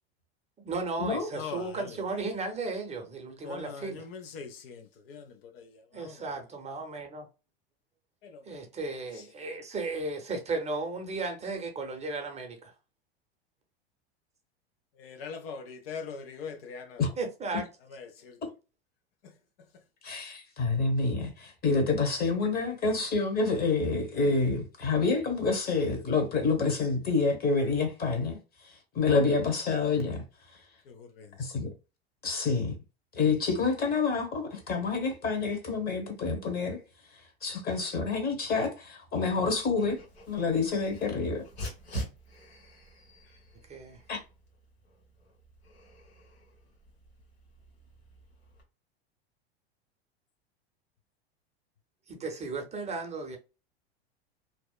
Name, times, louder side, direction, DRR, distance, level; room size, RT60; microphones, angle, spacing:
voice 1, 0.6-4.1 5.9-7.3 8.4-12.7 17.2-17.6 43.6-44.0 52.1-53.4, right 3 dB, 20° right, 0.6 m, -35 dB
voice 2, 3.4-4.8 5.1-5.2 5.6-5.7 6.0-6.2 15.0-15.6 15.9-17.0 30.9-31.3, left 5 dB, 65° left, 0.5 m, -40 dB
voice 3, 20.0-28.4 28.9-30.2 31.4-31.7 32.2-32.7 33.1-36.8 37.4-40.0 40.3-41.4 44.1-44.2, left 4 dB, 30° left, 1.0 m, -28 dB
Dog, 39.5-48.6, equal, 90° left, 1.2 m, -45 dB
2.7 x 2.1 x 2.2 m
hypercardioid pair, 95°, 31 cm